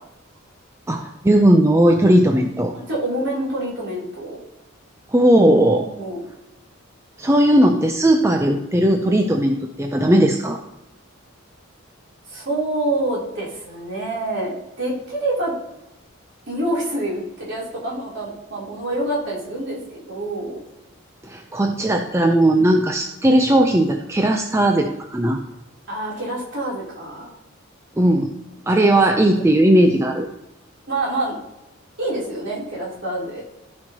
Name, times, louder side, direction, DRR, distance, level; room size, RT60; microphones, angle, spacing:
voice 1, 0.9-2.7 5.1-5.9 7.2-10.6 21.2-25.4 28.0-28.3 28.7-30.3, right 1 dB, 15° right, 4 dB, 0.4 m, -17 dB
voice 2, 2.7-4.4 5.7-6.3 12.3-15.5 16.5-20.6 22.4-22.7 25.9-27.3 28.7-29.0 30.9-31.3 32.0-33.4, right 1 dB, 55° right, -5 dB, 3.1 m, -27 dB
14.0 x 5.4 x 2.8 m, 0.94 s
head